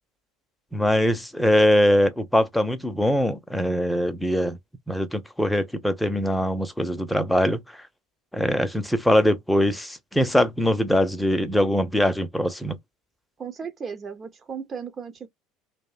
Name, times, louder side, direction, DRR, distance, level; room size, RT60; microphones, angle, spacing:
voice 1, 0.7-4.6 4.9-7.6 8.3-12.8, equal, 5° left, 0.6 m, -22 dB
voice 2, 13.4-15.3, right 6 dB, 35° right, 0.6 m, -35 dB
2.5 x 2.1 x 2.3 m
hypercardioid pair, 70°, 0 cm